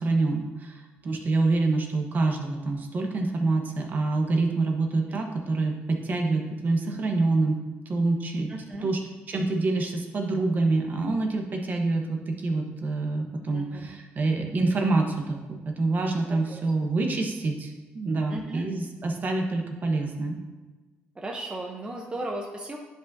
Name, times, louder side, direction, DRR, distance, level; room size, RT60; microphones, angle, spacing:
voice 1, 0.0-7.6 7.8-8.5 8.8-9.0 9.3-20.4, right 3 dB, 45° right, 2 dB, 1.2 m, -26 dB
voice 2, 8.5-8.9 13.5-14.0 16.5-16.9 18.3-18.6 21.1-22.8, right 2 dB, 20° right, 0 dB, 0.9 m, -36 dB
9.9 x 5.3 x 2.8 m, 1.2 s
cardioid pair, 90°, 4 cm